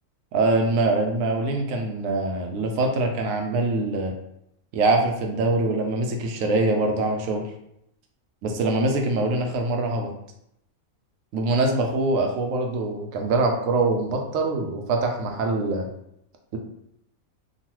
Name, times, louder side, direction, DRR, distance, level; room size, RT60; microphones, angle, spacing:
voice 1, 0.3-4.1 4.7-7.4 8.4-10.1 11.3-15.9, right 2 dB, 75° right, 2 dB, 0.9 m, -23 dB
3.0 x 2.2 x 2.9 m, 0.78 s
omnidirectional pair, 1.5 m